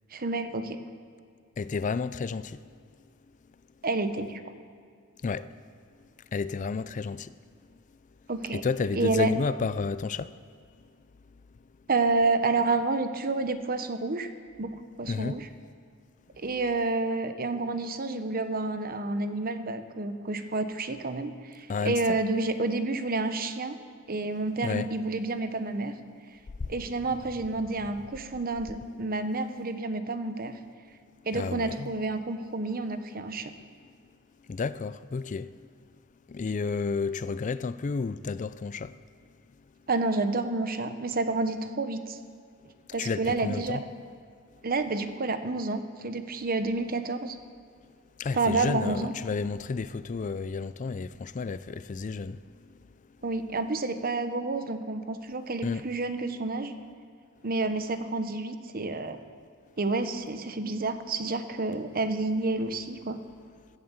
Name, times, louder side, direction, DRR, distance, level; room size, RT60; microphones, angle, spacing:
voice 1, 0.1-0.8 3.8-4.4 8.3-8.6 8.9-9.3 11.9-14.3 14.6-15.5 16.4-23.8 24.1-25.9 26.7-30.5 31.3-33.5 39.9-42.2 42.9-43.8 44.6-47.4 48.3-49.1 53.2-56.7 57.4-59.2 59.8-63.2, right 3 dB, 45° right, 1.0 m, -29 dB
voice 2, 1.6-2.6 5.2-5.5 6.3-7.3 7.7-7.8 8.5-10.3 15.0-15.4 21.7-22.2 24.6-24.9 26.6-26.8 31.3-31.9 34.4-35.7 36.3-39.0 43.0-43.8 48.2-52.9 55.6-55.9, left 4 dB, 35° left, 0.4 m, -31 dB
16.5 x 11.0 x 7.2 m
head